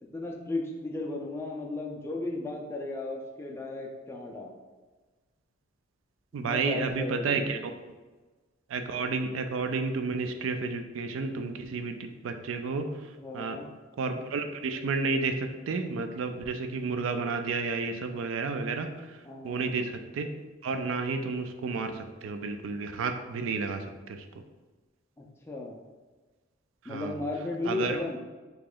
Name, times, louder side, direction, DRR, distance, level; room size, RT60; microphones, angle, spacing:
voice 1, 0.0-4.5 6.3-7.6 13.2-13.7 19.2-19.6 25.2-25.8 26.9-28.2, left 2 dB, 10° left, -1 dB, 0.3 m, -35 dB
voice 2, 6.3-7.6 8.7-13.6 14.0-19.2 19.4-20.3 20.6-24.3 26.8-27.2 27.7-28.0, right 4 dB, 75° right, 7 dB, 0.4 m, -31 dB
3.0 x 2.9 x 3.7 m, 1.3 s
head